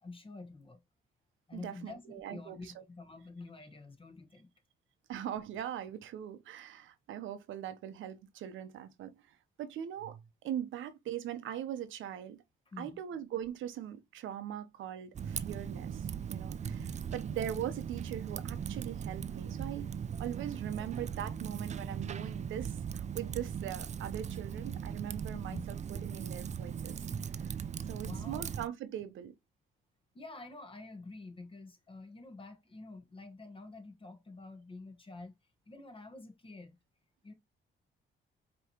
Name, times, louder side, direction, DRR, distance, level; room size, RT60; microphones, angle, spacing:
voice 1, 0.0-0.8 1.5-4.5 12.7-13.0 16.8-17.1 25.3-25.6 27.9-28.4 30.1-35.3 35.7-36.8 37.2-37.3, left 3 dB, 25° left, 1.3 m, -48 dB
voice 2, 1.5-2.8 5.1-12.4 12.8-16.8 17.1-19.9 20.2-27.0 27.9-29.3, right 10 dB, 80° right, 0.8 m, -41 dB
Typing, 15.1-28.7, right 7 dB, 35° right, 0.4 m, -39 dB
4.9 x 3.0 x 2.9 m
cardioid pair, 90°, 20 cm